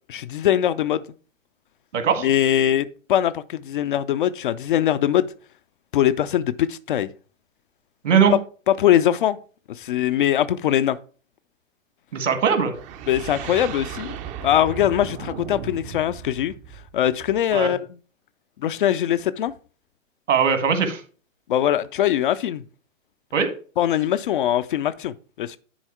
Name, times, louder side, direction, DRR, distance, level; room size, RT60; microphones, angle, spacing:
voice 1, 0.1-1.0 2.2-5.3 5.9-7.1 8.3-8.4 8.7-9.4 9.7-11.0 13.1-14.2 14.4-16.5 16.9-17.8 18.6-19.5 21.5-22.6 23.8-25.6, left 11 dB, 40° left, 0.4 m, -21 dB
voice 2, 1.9-2.3 8.0-8.3 12.1-12.7 17.5-17.7 20.3-21.0 23.3-23.5, right 6 dB, 65° right, 1.8 m, -20 dB
sound 1, 12.7-17.6, right 8 dB, 20° right, 0.5 m, -36 dB
10.0 x 4.1 x 4.4 m
figure-of-eight pair, 105°, 40 cm